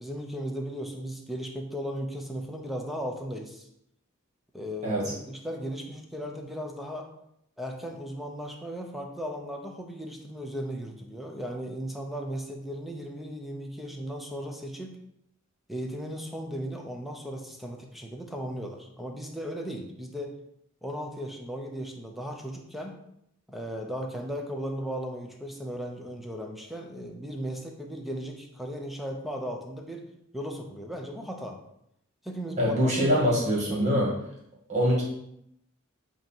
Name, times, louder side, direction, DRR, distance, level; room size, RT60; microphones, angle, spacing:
voice 1, 0.0-3.7 4.5-7.1 7.6-15.0 15.7-20.4 20.8-23.0 23.5-30.1 30.3-31.6 32.2-33.3 33.7-34.0, equal, ahead, 2 dB, 0.7 m, -36 dB
voice 2, 32.6-34.1 34.7-35.0, equal, 35° right, -4 dB, 2.1 m, -24 dB
8.1 x 3.0 x 4.5 m, 0.76 s
head